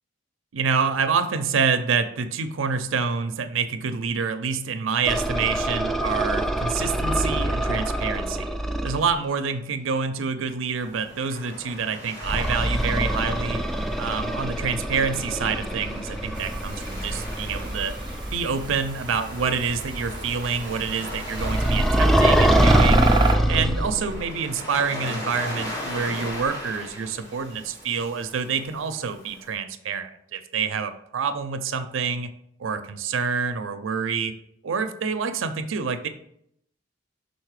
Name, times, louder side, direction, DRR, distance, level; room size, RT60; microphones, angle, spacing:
voice 1, 0.5-8.6 8.8-13.6 13.9-17.9 18.3-23.1 23.5-32.3 32.6-34.3 34.6-36.1, right 5 dB, 85° right, 9 dB, 0.5 m, -27 dB
sound 1, 5.0-9.1 12.2-18.5 21.4-24.2, right 1 dB, ahead, 0.3 m, -24 dB
Waves surf, 10.7-29.5, left 1 dB, 20° left, 1.8 m, -39 dB
sound 2, 16.3-23.4, right 4 dB, 25° right, 0.7 m, -31 dB
5.6 x 4.1 x 4.7 m, 0.72 s
head